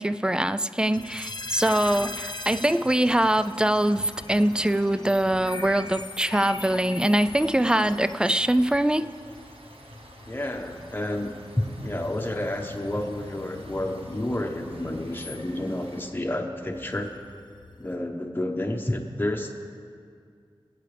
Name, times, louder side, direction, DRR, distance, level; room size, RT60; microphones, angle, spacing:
voice 1, 0.0-9.1, right 1 dB, 10° right, 13 dB, 0.3 m, -23 dB
sound 1, 0.9-18.0, left 2 dB, 50° left, 0.8 m, -42 dB
sound 2, 2.5-16.1, right 1 dB, 85° right, 1.2 m, -51 dB
voice 2, 10.3-17.1 17.8-19.5, left 1 dB, 20° left, 2 dB, 1.1 m, -30 dB
sound 3, 11.2-15.8, left 4 dB, 85° left, 0.5 m, -45 dB
20.0 x 8.3 x 3.4 m, 2.2 s
wide cardioid pair, 70°, 10 cm